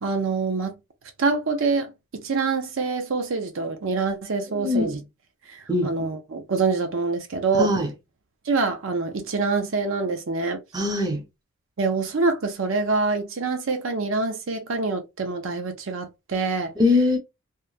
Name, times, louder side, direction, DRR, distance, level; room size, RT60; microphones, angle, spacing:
voice 1, 0.0-0.8 1.2-5.0 5.5-7.7 8.5-10.6 11.8-16.7, right 4 dB, 65° right, 0.6 m, -25 dB
voice 2, 4.5-5.0 5.7-5.9 7.6-7.9 10.7-11.2 16.8-17.2, left 3 dB, 20° right, 0.6 m, -22 dB
3.0 x 2.2 x 2.3 m
head